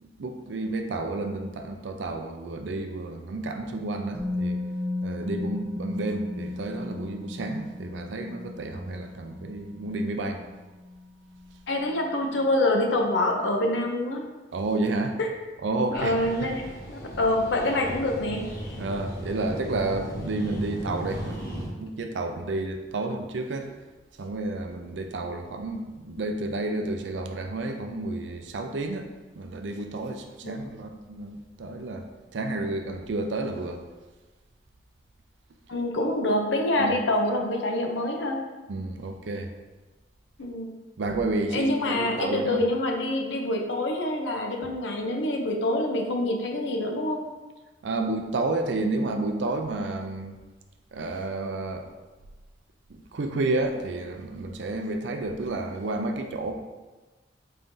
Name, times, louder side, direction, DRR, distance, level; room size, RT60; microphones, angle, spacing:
voice 1, 0.0-4.6 5.0-10.4 14.5-15.2 15.6-16.1 16.4-16.5 18.8-23.7 24.2-29.1 29.4-32.1 32.3-33.8 36.8-37.0 38.7-39.5 41.0-42.6 47.8-50.4 50.9-51.9 53.1-56.5, right 2 dB, 75° right, 5 dB, 0.4 m, -31 dB
Musical instrument, 4.1-12.0 12.3-12.5, left 2 dB, 5° right, 0.6 m, -36 dB
voice 2, 11.7-14.2 15.2-15.3 15.9-18.4 30.4-30.8 35.7-38.4 40.4-40.7 41.5-47.2, left 1 dB, 75° left, 2 dB, 0.6 m, -26 dB
sound 1, 15.9-21.7, equal, 55° left, 1.1 m, -37 dB
4.3 x 3.6 x 2.6 m, 1.2 s
head